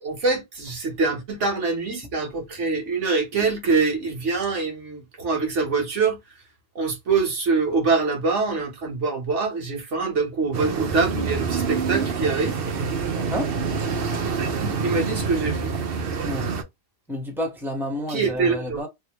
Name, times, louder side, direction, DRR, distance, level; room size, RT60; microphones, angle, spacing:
voice 1, 0.0-6.2 6.7-12.6 14.4-15.7 18.1-18.8, right 4 dB, 85° right, 1.6 m, -24 dB
sound 1, 10.5-16.6, right 5 dB, 60° right, 0.9 m, -26 dB
voice 2, 13.1-13.5 16.2-16.5 17.1-18.9, equal, ahead, 1.1 m, -29 dB
3.4 x 2.7 x 3.0 m
omnidirectional pair, 1.2 m